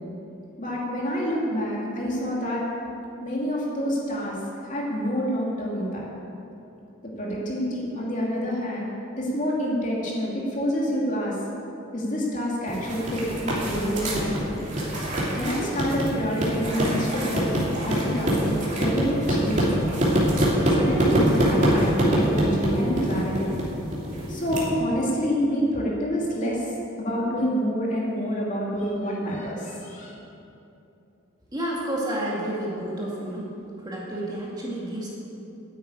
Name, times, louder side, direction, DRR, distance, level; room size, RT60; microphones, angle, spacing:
voice 1, 0.6-2.7 3.2-4.4 4.6-6.1 7.2-8.9 9.2-11.4 11.9-14.6 15.3-17.6 17.8-20.0 20.7-23.5 24.3-26.7 27.0-30.1, equal, 35° left, -4 dB, 2.7 m, -27 dB
sound 1, 12.7-24.6, equal, 35° right, 2.9 m, -24 dB
voice 2, 31.5-33.4 33.8-35.1, right 1 dB, 20° right, -5 dB, 2.3 m, -30 dB
10.0 x 8.9 x 9.1 m, 2.8 s
head